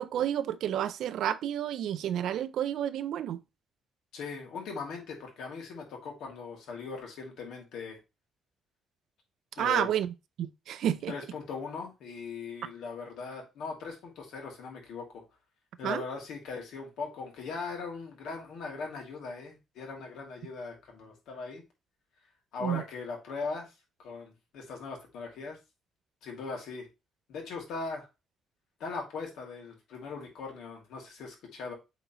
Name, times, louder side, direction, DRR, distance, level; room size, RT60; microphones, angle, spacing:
voice 1, 0.0-3.4 9.6-10.1 10.4-11.1 15.8-16.0 22.6-22.8, right 10 dB, 70° right, 0.5 m, -30 dB
voice 2, 4.1-8.0 9.5-9.9 11.1-15.2 15.8-21.6 22.5-23.7 24.0-25.6 26.2-26.9 27.3-28.1 28.8-31.7, left 4 dB, 75° left, 2.4 m, -39 dB
8.0 x 3.9 x 3.0 m
cardioid pair, 145°, 0 cm